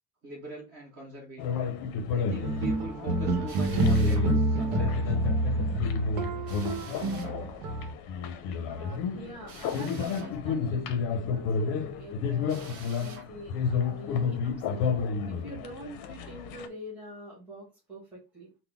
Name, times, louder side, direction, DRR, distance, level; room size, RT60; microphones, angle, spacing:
voice 1, 0.2-1.6 2.1-5.1, right 2 dB, 35° right, -2 dB, 1.2 m, -42 dB
sound 1, 1.4-16.7, left 5 dB, 55° left, 0.5 m, -32 dB
sound 2, 2.4-7.9, right 1 dB, 80° right, 0.9 m, -27 dB
Drill, 3.5-4.3 6.4-7.4 9.5-10.3 12.5-13.3, right 5 dB, 60° right, 1.0 m, -48 dB
voice 2, 8.7-14.8 15.3-18.5, equal, 5° right, -7 dB, 1.2 m, -45 dB
3.7 x 2.1 x 3.4 m, 0.29 s
cardioid pair, 180°, 43 cm